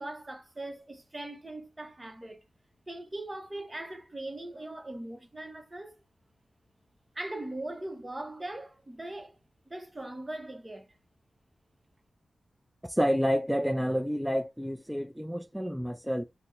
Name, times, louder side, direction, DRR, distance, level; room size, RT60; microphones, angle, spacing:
voice 1, 0.0-2.4 2.9-6.0 7.1-9.4 9.7-10.9, right 1 dB, 30° right, 0.8 m, -40 dB
voice 2, 12.8-16.2, equal, ahead, 0.4 m, -29 dB
2.8 x 2.1 x 3.5 m
cardioid pair, 40°, 0 cm